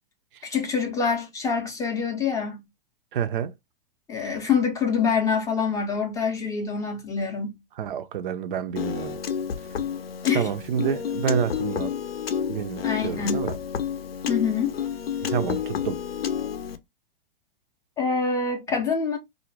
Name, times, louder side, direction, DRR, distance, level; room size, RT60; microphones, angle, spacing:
voice 1, 0.4-2.6 4.1-7.6 10.2-10.5 12.8-13.4 14.3-14.8 18.0-19.2, left 5 dB, 10° left, 0.4 m, -25 dB
voice 2, 3.1-3.5 7.8-9.2 10.3-11.9 12.5-13.6 15.2-16.0, right 8 dB, 60° right, 0.4 m, -28 dB
Piano, 8.8-16.8, left 7 dB, 90° left, 0.5 m, -30 dB
2.4 x 2.0 x 3.0 m
hypercardioid pair, 120°, 29 cm